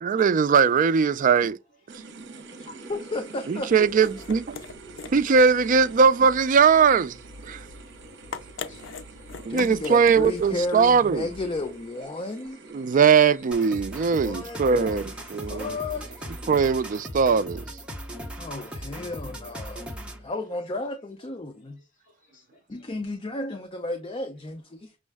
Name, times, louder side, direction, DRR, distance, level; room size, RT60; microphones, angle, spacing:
voice 1, 0.0-1.6 3.5-4.6 5.1-7.1 7.5-7.6 9.4-11.2 12.7-15.7 16.5-17.6, right 6 dB, 45° right, 0.3 m, -20 dB
sound 1, 1.9-17.0, right 3 dB, 65° right, 0.8 m, -47 dB
voice 2, 2.6-3.9 9.5-12.6 14.2-16.3 18.4-21.8 22.7-25.0, left 2 dB, 30° left, 0.5 m, -33 dB
sound 2, 3.7-11.9, left 4 dB, 75° left, 0.5 m, -43 dB
voice 3, 8.6-9.5 12.9-13.0 13.9-14.0 22.0-22.6, left 2 dB, 45° left, 1.4 m, -58 dB
sound 3, 13.5-20.3, equal, 5° right, 0.8 m, -38 dB
6.2 x 2.1 x 3.4 m
head